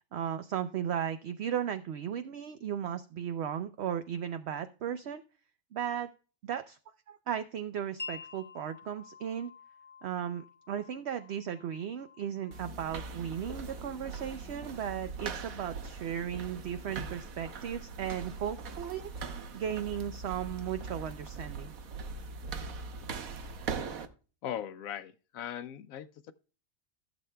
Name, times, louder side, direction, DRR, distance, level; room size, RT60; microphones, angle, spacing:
voice 1, 0.1-5.2 5.7-6.1 6.4-6.8 7.1-9.5 10.0-21.7, right 9 dB, 60° right, 0.8 m, -36 dB
Wind chime, 8.0-15.6, left 4 dB, 15° left, 0.5 m, -50 dB
sound 1, 12.5-24.1, right 4 dB, 85° right, 1.4 m, -41 dB
voice 2, 24.4-26.3, left 10 dB, 85° left, 1.0 m, -39 dB
15.5 x 7.2 x 2.2 m
omnidirectional pair, 1.4 m